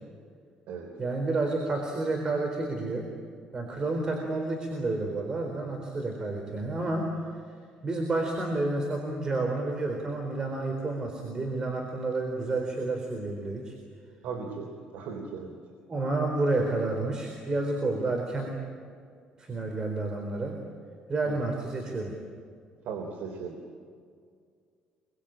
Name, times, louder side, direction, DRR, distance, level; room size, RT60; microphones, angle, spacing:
voice 1, 1.0-3.1 3.5-7.1 7.8-13.8 15.9-18.6 19.4-20.6 21.1-22.2, right 2 dB, 30° right, 2 dB, 4.1 m, -30 dB
voice 2, 14.2-15.6 21.3-21.4 22.8-23.6, right 5 dB, 75° right, 2 dB, 3.6 m, -37 dB
26.5 x 23.5 x 9.0 m, 2.1 s
cardioid pair, 120°, 3 cm